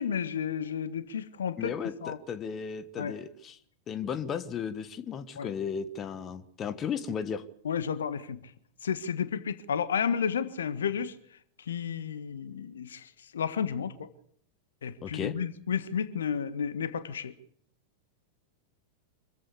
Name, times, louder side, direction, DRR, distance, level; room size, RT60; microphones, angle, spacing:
voice 1, 0.0-1.7 2.0-2.2 3.0-3.1 5.4-5.5 7.6-8.5 8.8-11.1 11.7-14.1 14.8-17.3, left 7 dB, 65° left, 1.6 m, -32 dB
voice 2, 1.6-3.6 3.9-7.4 15.0-15.3, left 7 dB, 25° left, 1.5 m, -35 dB
26.0 x 15.0 x 8.5 m
figure-of-eight pair, 90°, 0 cm